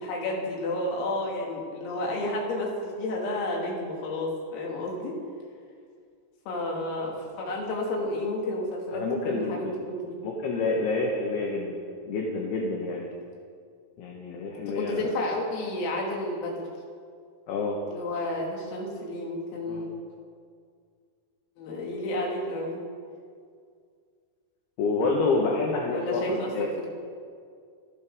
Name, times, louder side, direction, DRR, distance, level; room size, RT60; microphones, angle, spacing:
voice 1, 0.0-5.2 6.5-10.2 14.6-16.6 17.9-19.9 21.6-22.8 25.9-26.5 26.8-26.9, left 1 dB, 85° left, -2 dB, 5.2 m, -31 dB
voice 2, 8.9-9.7 10.2-13.1 14.0-15.1 17.5-17.8 19.7-19.8 24.8-26.7, left 3 dB, 65° left, -2 dB, 3.0 m, -28 dB
27.5 x 12.0 x 3.8 m, 2.2 s
omnidirectional pair, 5.9 m